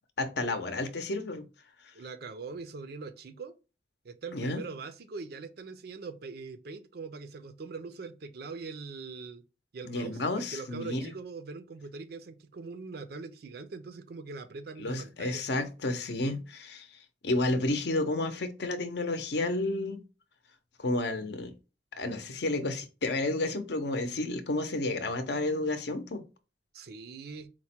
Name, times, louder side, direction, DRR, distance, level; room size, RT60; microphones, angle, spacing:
voice 1, 0.2-1.5 1.8-1.9 4.3-4.6 9.8-11.1 14.8-20.0 20.8-21.5 22.0-26.2, left 2 dB, 60° left, 0.7 m, -31 dB
voice 2, 1.9-3.6 4.0-9.4 9.7-15.4 26.7-27.5, right 4 dB, 55° right, 0.5 m, -42 dB
4.5 x 2.1 x 4.3 m
head